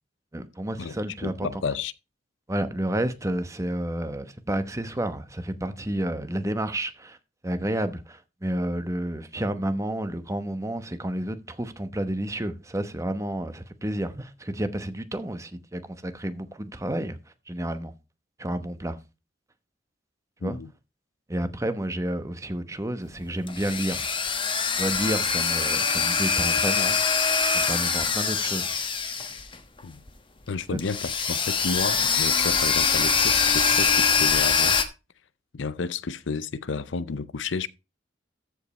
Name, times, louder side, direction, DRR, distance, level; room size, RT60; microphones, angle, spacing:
voice 1, 0.3-1.5 2.5-7.2 7.4-17.2 17.5-17.9 18.4-19.0 20.4-20.6 21.3-24.1 24.8-27.0 27.5-28.8 30.7-30.8, right 1 dB, 15° right, 0.9 m, -30 dB
voice 2, 1.2-1.9 20.4-20.7 29.8-30.0 30.5-34.8 35.5-37.7, left 4 dB, 80° left, 0.6 m, -31 dB
sound 1, 23.2-29.8 30.1-30.2 30.8-34.8, left 5 dB, 25° left, 1.1 m, -24 dB
14.0 x 5.2 x 4.2 m
head